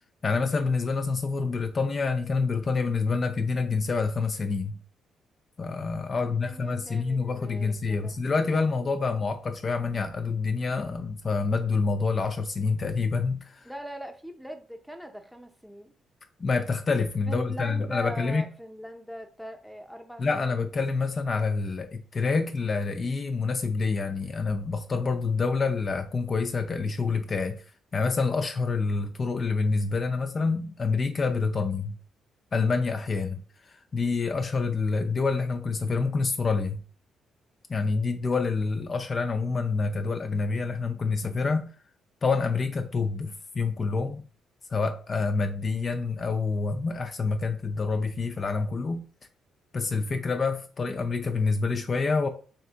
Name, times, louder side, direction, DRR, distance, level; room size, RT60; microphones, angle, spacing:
voice 1, 0.2-4.8 5.6-13.7 16.4-18.4 20.2-27.6 27.9-32.0 32.5-36.8 37.7-41.7 42.2-44.2 44.7-49.0 49.7-52.3, left 4 dB, 40° left, 0.4 m, -27 dB
voice 2, 6.2-8.2 13.6-15.9 17.3-20.7, equal, ahead, 0.6 m, -41 dB
3.4 x 2.7 x 3.3 m
cardioid pair, 90°, 0 cm